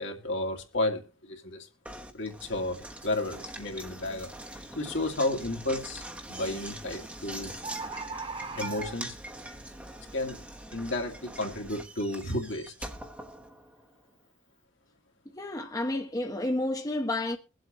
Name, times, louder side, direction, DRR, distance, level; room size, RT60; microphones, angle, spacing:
voice 1, 0.0-1.7 2.1-7.5 8.6-9.2 10.1-10.4 10.7-12.7, left 2 dB, 65° left, 2.3 m, -32 dB
Knock, 1.8-14.0, right 1 dB, 5° right, 1.2 m, -43 dB
Bird, 4.4-4.6 5.1-5.6 6.6-6.7 7.0-7.1 7.3-7.4 7.6-9.3 9.9-10.0, right 4 dB, 30° right, 1.7 m, -39 dB
voice 2, 15.3-17.4, left 1 dB, 20° left, 0.8 m, -30 dB
23.0 x 7.8 x 3.0 m
head